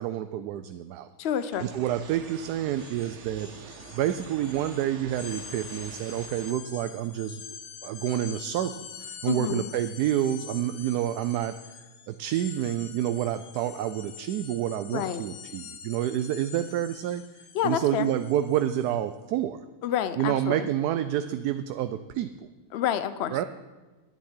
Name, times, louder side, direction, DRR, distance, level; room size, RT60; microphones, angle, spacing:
voice 1, 0.0-1.1 1.6-7.4 7.8-8.7 9.0-11.8 12.1-17.2 17.6-19.6 20.2-22.3 23.3-23.4, right 11 dB, 80° right, 10 dB, 1.1 m, -28 dB
voice 2, 1.2-1.7 9.3-9.7 14.9-15.2 17.5-18.1 19.8-20.7 22.7-23.4, left 9 dB, 60° left, 12 dB, 0.7 m, -28 dB
sound 1, 1.3-1.5 1.8-19.0, left 8 dB, 80° left, 1.4 m, -46 dB
sound 2, 1.5-6.5, right 7 dB, 55° right, 0.9 m, -46 dB
10.5 x 7.2 x 9.6 m, 1.2 s
omnidirectional pair, 1.7 m